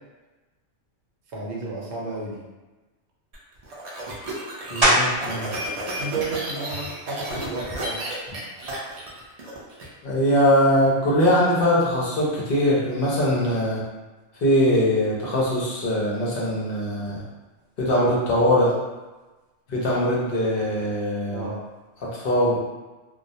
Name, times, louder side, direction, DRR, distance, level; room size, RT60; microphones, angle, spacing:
voice 1, 1.3-2.4 5.9-8.0 21.3-21.6, right 3 dB, 65° right, -4 dB, 0.9 m, -32 dB
sound 1, 3.3-9.9, right 1 dB, 80° right, 0.3 m, -32 dB
voice 2, 4.7-5.5 10.0-13.8 14.4-17.2 17.8-18.7 19.7-21.5 22.0-22.6, equal, 55° left, -5 dB, 0.8 m, -21 dB
sound 2, 4.8-5.4 6.0-10.4 10.9-16.1 16.4-22.0, equal, 25° right, 0.7 m, -31 dB
2.3 x 2.0 x 2.6 m, 1.2 s
omnidirectional pair, 1.3 m